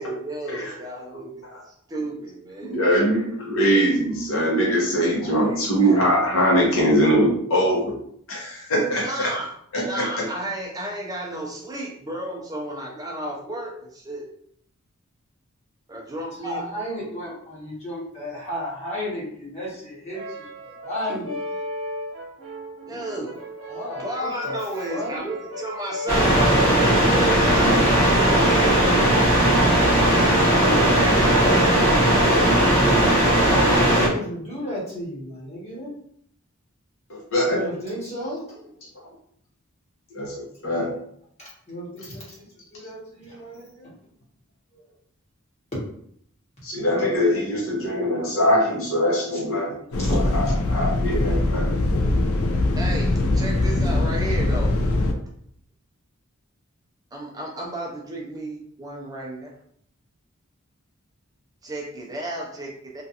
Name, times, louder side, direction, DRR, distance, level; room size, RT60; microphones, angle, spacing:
voice 1, 0.0-2.8 5.2-6.1 9.0-14.3 15.9-16.6 22.9-23.4 24.0-28.9 30.2-32.6 38.0-38.2 52.8-54.7 57.1-59.5 61.6-63.0, right 1 dB, 15° right, -2 dB, 0.4 m, -33 dB
voice 2, 2.6-8.0 8.3-9.3 9.7-10.3 37.3-37.6 40.1-41.0 46.6-49.7 50.3-51.7, equal, 70° left, -3 dB, 0.8 m, -22 dB
voice 3, 16.4-21.4 22.8-23.2 23.7-25.2 29.6-31.6 33.2-35.9 37.4-38.4 41.4-43.9 44.7-44.8 47.0-47.1 49.3-49.4 49.8-50.3, equal, 30° left, -7 dB, 1.2 m, -33 dB
Brass instrument, 20.1-28.7, left 1 dB, 75° right, 0.8 m, -36 dB
sound 1, 26.1-34.1, right 1 dB, 10° left, 0.9 m, -18 dB
sound 2, 49.9-55.1, left 2 dB, 90° left, 0.4 m, -22 dB
2.4 x 2.3 x 2.7 m, 0.67 s
head